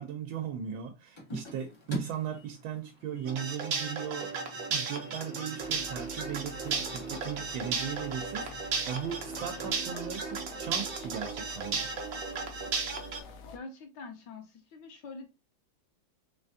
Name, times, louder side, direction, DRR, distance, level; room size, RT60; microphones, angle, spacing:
voice 1, 0.0-4.3 4.7-11.9, right 8 dB, 85° right, 1.4 m, -38 dB
sound 1, 1.2-9.7, left 1 dB, 40° left, 0.4 m, -46 dB
sound 2, 3.3-13.2, right 5 dB, 65° right, 0.9 m, -35 dB
sound 3, 5.6-13.6, left 4 dB, 85° left, 1.4 m, -48 dB
voice 2, 13.5-15.3, left 4 dB, 70° left, 1.3 m, -45 dB
3.9 x 3.3 x 2.6 m
omnidirectional pair, 2.2 m